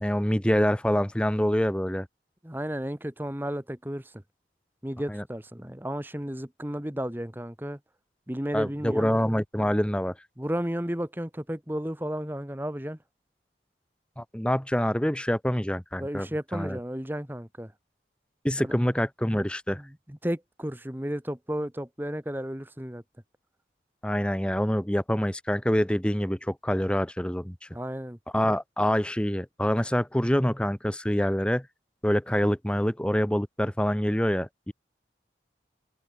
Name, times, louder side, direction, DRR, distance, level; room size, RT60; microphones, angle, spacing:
voice 1, 0.0-2.1 5.1-5.2 8.5-10.1 14.2-16.3 16.5-16.8 18.4-19.8 24.0-27.5 28.3-31.7 32.0-34.7, equal, 5° left, 0.9 m, -26 dB
voice 2, 2.4-4.2 4.8-7.8 8.3-9.1 10.4-13.0 16.0-17.7 18.6-18.7 19.7-23.0 27.7-28.2, equal, 10° right, 1.4 m, -33 dB
open air
head